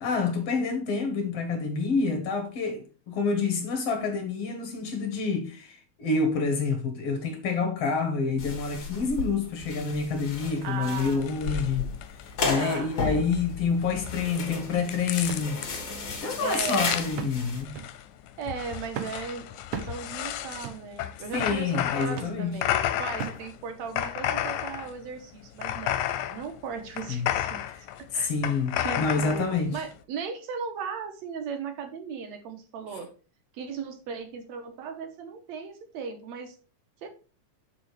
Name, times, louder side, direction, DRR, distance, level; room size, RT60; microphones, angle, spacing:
voice 1, 0.0-11.9 12.2-15.6 16.2-17.7 21.3-22.6 27.1-27.3 28.1-29.8 33.0-33.1, left 4 dB, 60° left, 2.0 m, -28 dB
sound 1, 8.4-17.6, left 4 dB, 45° left, 1.8 m, -34 dB
voice 2, 10.6-11.7 12.6-12.9 16.4-16.9 18.4-19.5 19.8-26.0 26.3-27.6 28.1-28.3 28.8-33.1 33.5-36.6 37.0-37.1, right 6 dB, 70° right, 2.1 m, -37 dB
sound 2, 11.2-30.0, left 12 dB, 85° left, 2.0 m, -33 dB
sound 3, 15.3-15.5 16.0-16.1 17.2-17.4 17.7-18.0 18.9-19.2 19.7-20.0 20.6-20.9 21.4-21.6 22.2-22.4 23.2-23.5 24.2-24.3, right 8 dB, 90° right, 1.2 m, -37 dB
6.2 x 5.0 x 4.7 m
omnidirectional pair, 3.4 m